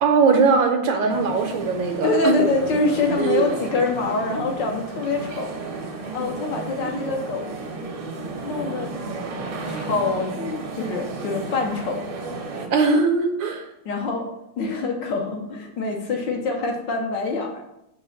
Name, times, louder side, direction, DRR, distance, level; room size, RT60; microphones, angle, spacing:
voice 1, 0.0-2.4 3.2-3.4 6.8-6.9 12.7-13.6, right 4 dB, 70° right, 4 dB, 1.3 m, -20 dB
sound 1, 1.1-12.7, right 3 dB, 55° right, 1.1 m, -33 dB
voice 2, 2.0-5.5 6.1-7.4 8.4-8.9 9.7-12.0 13.8-14.3 14.6-17.6, left 3 dB, 65° left, 1 dB, 1.4 m, -25 dB
6.2 x 3.0 x 5.5 m, 0.86 s
omnidirectional pair, 2.4 m